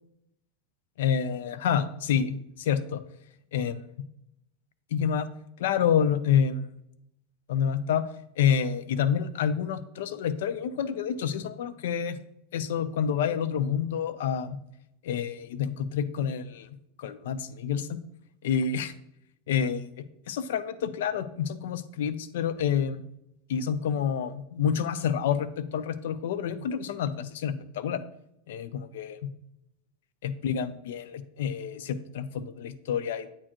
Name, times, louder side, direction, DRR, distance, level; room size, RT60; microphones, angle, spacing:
voice 1, 1.0-3.0 3.5-3.8 4.9-5.3 5.6-6.6 7.5-8.0 8.4-12.2 12.5-14.6 15.0-16.7 17.0-18.0 18.4-18.9 19.5-19.9 20.3-23.0 23.5-28.0 28.5-29.2 30.2-33.3, left 8 dB, 75° left, 14 dB, 0.5 m, -28 dB
8.6 x 4.3 x 3.0 m, 0.80 s
supercardioid pair, 160°, 0 cm